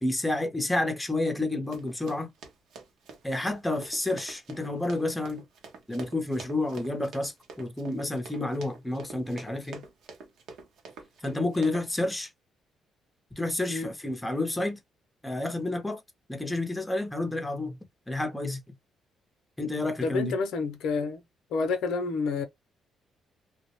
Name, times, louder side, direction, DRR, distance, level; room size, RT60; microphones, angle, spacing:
voice 1, 0.0-2.3 3.2-5.4 5.9-9.8 11.2-12.3 13.4-14.8 15.2-16.0 16.3-17.8 18.1-18.6 19.6-20.3, left 2 dB, 10° left, 0.7 m, -30 dB
Run, 1.7-11.9, right 4 dB, 75° right, 0.8 m, -46 dB
voice 2, 20.0-21.2 21.5-22.4, left 4 dB, 85° left, 0.6 m, -29 dB
2.3 x 2.1 x 2.9 m
cardioid pair, 90°, 0 cm